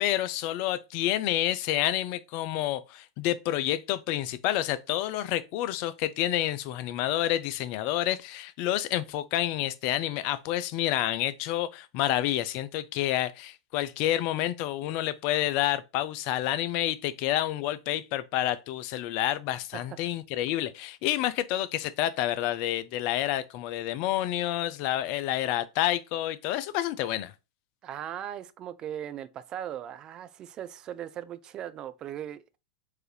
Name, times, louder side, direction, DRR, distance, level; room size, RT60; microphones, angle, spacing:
voice 1, 0.0-27.3, left 13 dB, 45° left, 0.4 m, -29 dB
voice 2, 27.8-32.6, right 10 dB, 30° right, 0.4 m, -38 dB
4.6 x 2.6 x 3.2 m
figure-of-eight pair, 95°, 3 cm